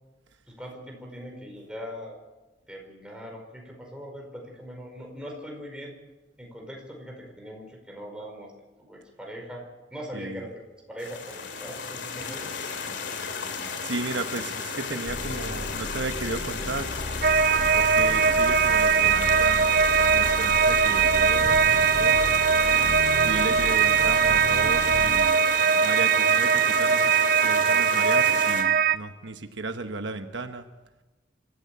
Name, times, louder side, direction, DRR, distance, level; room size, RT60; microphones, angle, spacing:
voice 1, 0.5-2.2 2.7-5.9 6.4-8.5 8.8-12.4, equal, 5° right, 0 dB, 5.0 m, -41 dB
voice 2, 10.1-10.5 13.8-17.0 17.8-22.3 23.2-25.4 25.8-30.7, right 3 dB, 75° right, 7 dB, 1.1 m, -35 dB
sound 1, 11.0-28.6, left 5 dB, 70° left, 2.6 m, -34 dB
sound 2, 15.0-25.1, left 1 dB, 90° left, 5.6 m, -35 dB
sound 3, 17.2-29.0, right 7 dB, 50° right, 0.6 m, -21 dB
26.0 x 13.5 x 8.5 m, 1.1 s
head